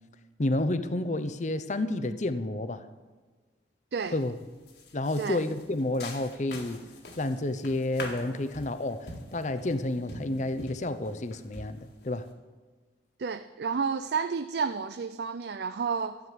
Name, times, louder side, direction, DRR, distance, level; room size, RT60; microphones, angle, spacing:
voice 1, 0.4-2.9 4.1-4.3 4.9-6.8 7.2-12.3, left 2 dB, 40° left, 0.7 m, -30 dB
sound 1, 4.0-4.3 4.7-12.3, left 2 dB, 60° left, 1.9 m, -44 dB
voice 2, 13.2-16.2, right 5 dB, 60° right, 0.4 m, -31 dB
12.5 x 9.7 x 7.5 m
head